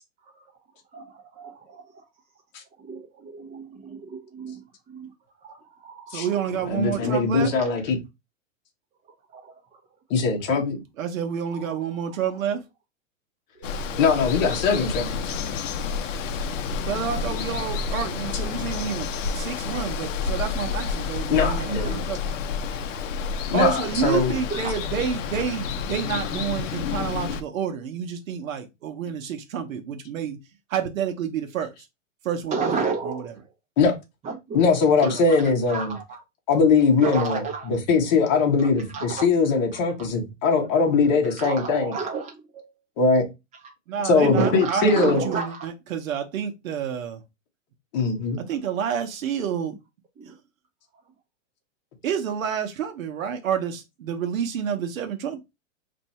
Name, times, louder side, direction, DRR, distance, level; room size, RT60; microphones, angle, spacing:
voice 1, 0.9-2.0 2.8-5.1 5.4-6.5 6.9-7.2 7.6-7.7 9.3-9.8 11.5-12.2 13.6-14.6 15.8-15.9 17.1-17.4 19.6-19.9 21.8-22.0 22.7-22.8 24.0-24.2 24.5-24.7 32.5-33.3 34.2-34.6 35.0-35.4 35.7-36.2 37.0-37.7 38.6-39.2 39.7-40.1 41.4-42.7 44.2-45.7 50.2-50.3, right 4 dB, 15° right, 1.0 m, -33 dB
voice 2, 6.1-7.5 11.0-12.6 16.9-19.1 19.3-22.2 23.5-30.4 30.7-31.7 32.2-32.8 35.0-35.1 43.9-47.2 48.4-49.7 52.0-55.4, right 8 dB, 80° right, 0.9 m, -29 dB
voice 3, 6.6-8.0 10.1-10.8 14.0-15.3 21.3-22.0 23.5-24.3 33.8-34.0 34.5-35.9 36.5-37.4 37.7-41.9 43.0-43.2 44.0-45.2 47.9-48.4, left 4 dB, 35° left, 1.1 m, -21 dB
Water, 13.6-27.4, left 5 dB, 70° left, 0.6 m, -29 dB
2.7 x 2.6 x 4.2 m
supercardioid pair, 160°, 39 cm